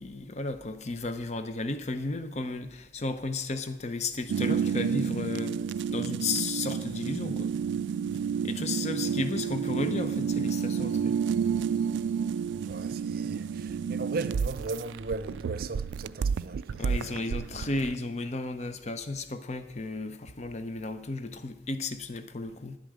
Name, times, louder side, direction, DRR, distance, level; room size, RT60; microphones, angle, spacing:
voice 1, 0.0-5.6 5.9-7.5 8.4-11.2 16.8-22.8, left 3 dB, 40° left, 0.7 m, -33 dB
sound 1, 4.3-17.9, right 7 dB, 90° right, 0.3 m, -30 dB
voice 2, 12.6-17.2, right 3 dB, 55° right, 0.6 m, -37 dB
10.5 x 8.4 x 7.6 m
head